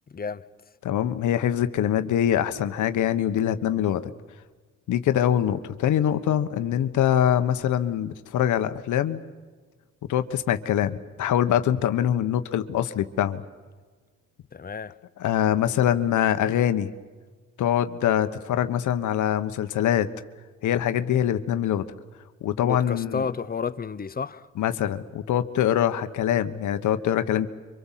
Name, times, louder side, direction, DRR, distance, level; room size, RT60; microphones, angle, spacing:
voice 1, 0.1-0.5 14.5-14.9 22.6-24.5, left 5 dB, 30° left, 0.9 m, -31 dB
voice 2, 0.8-4.0 4.9-9.2 10.1-13.4 15.2-16.9 17.6-20.1 20.6-21.8 22.4-23.2 24.6-27.5, left 10 dB, 75° left, 1.3 m, -24 dB
27.0 x 25.0 x 7.5 m
cardioid pair, 90°, 30 cm